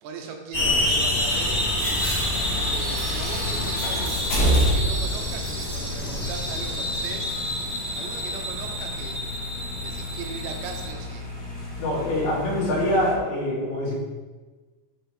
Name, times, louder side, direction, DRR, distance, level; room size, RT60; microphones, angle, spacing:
voice 1, 0.0-1.6 2.5-7.3 7.9-9.2 9.8-11.2, right 5 dB, 80° right, 3 dB, 3.2 m, -39 dB
sound 1, 0.5-10.9, left 1 dB, 80° left, 0.4 m, -28 dB
sound 2, 1.3-13.1, equal, 45° left, 3.1 m, -30 dB
sound 3, 1.7-5.0 5.3-5.9 6.4-7.1, right 1 dB, 30° right, 1.2 m, -38 dB
voice 2, 11.8-13.9, left 1 dB, 60° left, -6 dB, 3.8 m, -24 dB
7.6 x 5.7 x 4.4 m, 1.3 s
omnidirectional pair, 5.0 m